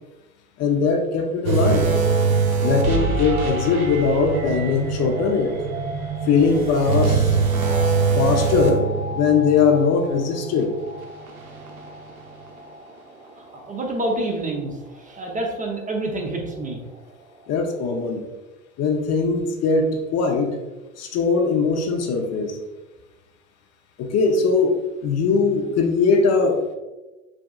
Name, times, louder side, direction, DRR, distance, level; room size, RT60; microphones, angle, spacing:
voice 1, 0.6-1.9 2.6-5.5 6.3-7.4 8.1-8.9 9.1-10.7 17.5-18.2 18.8-20.5 21.0-22.6 24.0-26.7, left 4 dB, 35° left, 3 dB, 0.7 m, -20 dB
sound 1, 1.4-12.9 13.3-13.5 14.1-14.2, right 4 dB, 90° right, 0.9 m, -24 dB
voice 2, 13.4-16.8, right 2 dB, 20° right, 1 dB, 0.7 m, -28 dB
6.2 x 3.4 x 2.4 m, 1.1 s
hypercardioid pair, 90°, 42 cm